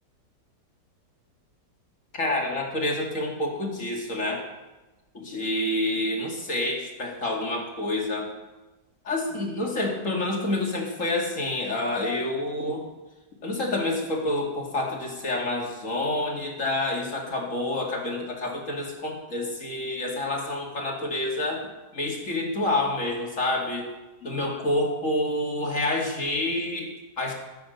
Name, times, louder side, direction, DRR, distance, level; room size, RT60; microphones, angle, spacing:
voice 1, 2.1-4.5 5.1-8.3 9.0-12.8 13.4-23.9 24.2-27.3, left 1 dB, 50° left, 0 dB, 2.7 m, -28 dB
15.5 x 7.7 x 6.6 m, 1.1 s
omnidirectional pair, 1.8 m